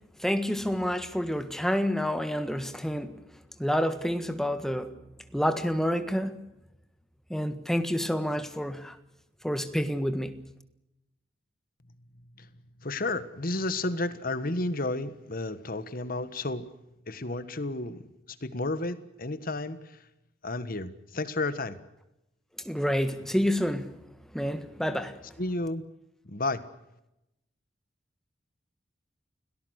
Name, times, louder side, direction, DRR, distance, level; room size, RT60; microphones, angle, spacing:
voice 1, 0.2-3.2 3.6-4.9 5.3-6.4 7.3-9.0 9.4-10.4 22.6-24.0 24.3-25.2, equal, ahead, 1.6 m, -28 dB
voice 2, 12.8-16.7 17.1-20.1 20.4-21.8 25.4-25.8 26.2-26.6, left 2 dB, 50° left, 1.5 m, -32 dB
29.5 x 18.5 x 6.5 m
head